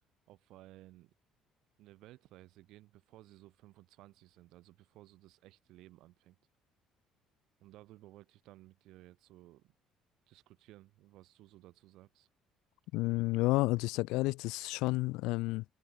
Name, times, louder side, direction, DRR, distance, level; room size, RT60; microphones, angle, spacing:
voice 1, 0.3-1.1 1.8-6.4 7.6-9.7 10.3-12.3, right 16 dB, 65° right, 7.5 m, -57 dB
voice 2, 12.9-15.6, left 21 dB, 85° left, 0.6 m, -31 dB
cardioid pair, 155°, 0 cm